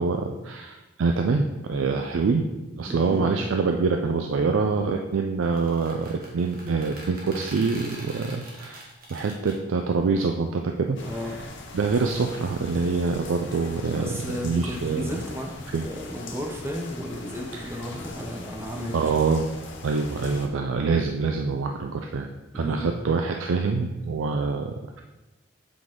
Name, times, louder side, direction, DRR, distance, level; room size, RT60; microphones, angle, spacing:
voice 1, 0.0-8.8 9.1-11.0 11.2-11.4 11.7-15.2 15.7-15.8 17.5-17.7 18.9-19.5 19.8-22.3 22.5-25.0, right 4 dB, 90° right, 4 dB, 0.4 m, -25 dB
voice 2, 2.8-3.3 11.0-11.4 14.0-15.5 15.8-19.0 22.5-23.0, equal, 10° right, 1 dB, 0.7 m, -33 dB
sound 1, 5.4-9.6, right 1 dB, 45° right, 1.4 m, -43 dB
sound 2, 11.0-20.5, left 2 dB, 70° left, 0.8 m, -41 dB
7.6 x 4.0 x 3.7 m, 1.1 s
head